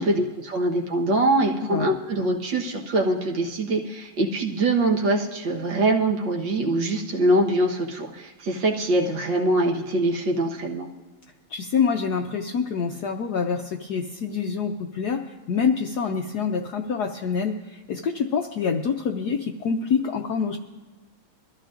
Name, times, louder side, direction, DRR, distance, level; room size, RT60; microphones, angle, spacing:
voice 1, 0.0-10.9, right 2 dB, 60° right, 0 dB, 1.9 m, -23 dB
voice 2, 11.5-20.6, left 6 dB, 70° left, 3 dB, 0.9 m, -26 dB
23.5 x 14.0 x 2.5 m, 1.3 s
omnidirectional pair, 2.4 m